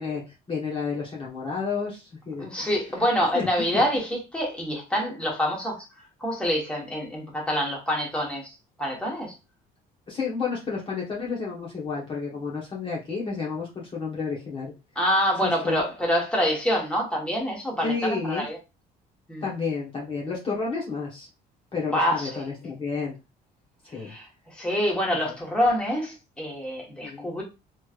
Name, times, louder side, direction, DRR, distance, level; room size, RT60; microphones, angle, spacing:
voice 1, 0.0-2.4 3.3-3.5 3.7-3.8 10.1-14.7 15.4-15.8 17.8-18.4 19.4-21.3 21.7-23.2 23.8-24.2 25.1-25.3 27.0-27.3, left 5 dB, 30° left, 1.1 m, -31 dB
voice 2, 2.4-5.8 6.2-8.5 8.8-9.3 14.9-18.6 19.3-19.4 21.9-22.5 24.0-27.4, equal, 5° left, 1.3 m, -26 dB
3.1 x 3.1 x 2.4 m
cardioid pair, 110°, 17 cm